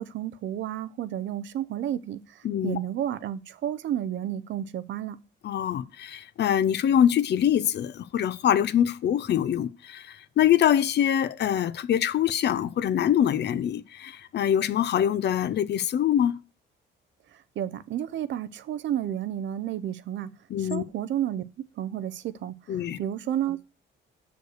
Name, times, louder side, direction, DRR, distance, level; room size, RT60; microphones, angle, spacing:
voice 1, 0.0-5.2 17.3-20.3 20.6-21.4 21.8-23.6, right 11 dB, 70° right, 0.6 m, -31 dB
voice 2, 2.4-2.8 5.4-16.3 20.5-20.8 22.7-23.0, left 10 dB, 60° left, 0.6 m, -24 dB
6.5 x 5.1 x 6.4 m
cardioid pair, 90°, 20 cm